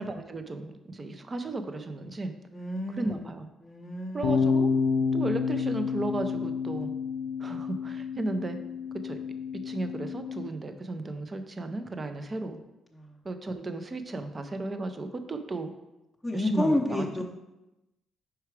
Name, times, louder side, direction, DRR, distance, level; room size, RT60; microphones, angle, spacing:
voice 1, 0.0-2.3 2.9-3.5 4.1-4.7 5.1-6.9 7.4-8.6 9.0-9.2 9.6-12.6 13.2-15.7 16.3-17.2, right 2 dB, 30° right, 8 dB, 0.6 m, -34 dB
voice 2, 2.5-3.3 3.6-4.4 12.9-13.2 16.2-17.2, left 1 dB, 5° left, -4 dB, 0.8 m, -30 dB
sound 1, 4.2-10.5, left 5 dB, 80° left, 0.4 m, -29 dB
4.7 x 4.6 x 4.7 m, 0.97 s
cardioid pair, 90°, 0 cm